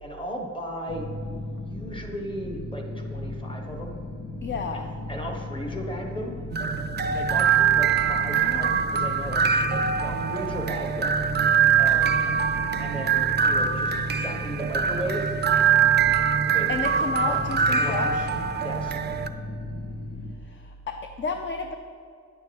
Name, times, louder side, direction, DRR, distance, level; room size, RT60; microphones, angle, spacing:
voice 1, 0.0-1.1 1.6-4.0 5.1-6.4 7.1-11.2 11.8-12.2 12.8-15.3 16.5-16.7 17.0-17.4 17.7-18.0 18.6-19.0, equal, 15° left, 1 dB, 1.2 m, -36 dB
sound 1, 0.9-20.3, left 2 dB, 90° left, 1.2 m, -36 dB
voice 2, 4.4-5.0 8.3-8.9 16.7-18.3 20.4-21.7, left 4 dB, 40° left, 5 dB, 0.5 m, -32 dB
sound 2, 6.5-19.3, right 7 dB, 35° right, 0.4 m, -23 dB
9.6 x 6.9 x 4.6 m, 2.4 s
wide cardioid pair, 135°, 30 cm